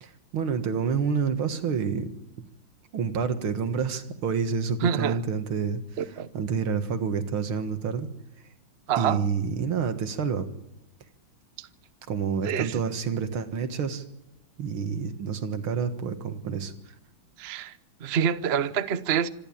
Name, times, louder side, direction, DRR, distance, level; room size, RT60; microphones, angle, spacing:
voice 1, 0.0-2.1 2.9-8.1 9.0-10.5 12.1-14.0 14.6-16.7, right 6 dB, 85° right, 2.4 m, -28 dB
voice 2, 4.8-5.2 6.0-6.3 8.9-9.2 11.6-11.7 12.4-12.8 17.4-17.7 18.0-19.3, right 8 dB, 45° right, 0.8 m, -26 dB
26.0 x 11.5 x 8.8 m
omnidirectional pair, 2.2 m